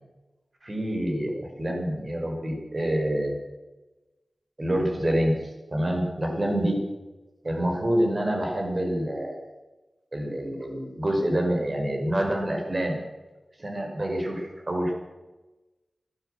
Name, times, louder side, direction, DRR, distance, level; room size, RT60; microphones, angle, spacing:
voice 1, 0.6-3.3 4.6-6.8 7.4-9.4 10.1-13.0 13.6-14.9, right 1 dB, 40° right, 2 dB, 5.0 m, -27 dB
15.5 x 12.0 x 7.7 m, 1.1 s
cardioid pair, 50°, 0 cm